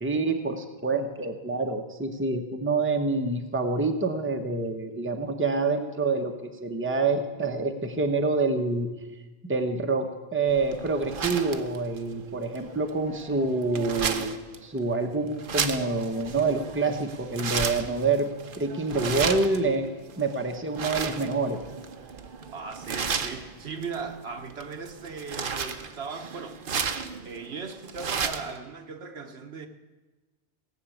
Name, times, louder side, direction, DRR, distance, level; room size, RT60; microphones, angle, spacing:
voice 1, 0.0-8.9 9.4-14.3 14.6-18.3 18.6-19.9 20.2-21.6, right 3 dB, 10° right, 4 dB, 0.9 m, -27 dB
sound 1, 10.5-28.6, right 6 dB, 55° right, 1.0 m, -34 dB
voice 2, 22.5-26.6 27.2-29.7, right 5 dB, 75° right, 5 dB, 1.3 m, -38 dB
17.5 x 6.3 x 8.5 m, 1.2 s
omnidirectional pair, 1.1 m